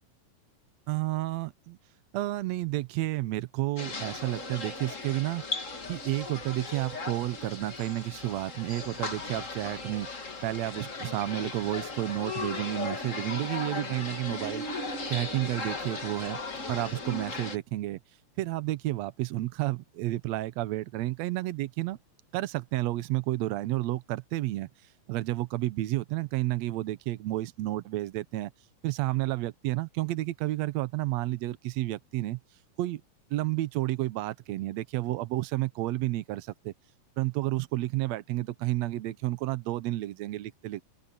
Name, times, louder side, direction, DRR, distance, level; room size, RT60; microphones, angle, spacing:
voice 1, 0.9-1.8 2.1-5.4 5.9-10.1 10.4-14.6 15.1-16.4 16.7-18.0 18.4-22.0 22.3-24.7 25.1-28.5 28.8-32.4 32.8-33.0 33.3-36.7 37.2-40.9, right 17 dB, 80° right, 1.5 m, -31 dB
sound 1, 3.8-17.6, left 3 dB, 30° left, 1.8 m, -37 dB
open air
omnidirectional pair, 4.1 m